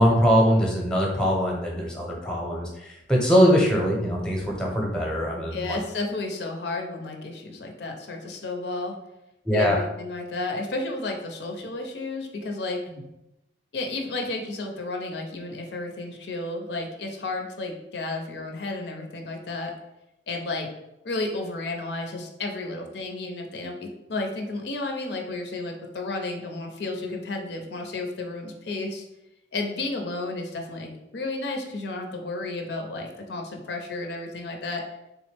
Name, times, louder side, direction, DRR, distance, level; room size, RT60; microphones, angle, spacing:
voice 1, 0.0-5.8 9.4-9.8 12.9-13.0, equal, 5° left, -2 dB, 0.7 m, -22 dB
voice 2, 5.5-8.9 9.5-12.8 13.7-19.7 20.3-20.7 21.0-29.1 29.5-34.8, left 2 dB, 60° left, 3 dB, 0.5 m, -32 dB
3.5 x 3.0 x 3.2 m, 0.91 s
head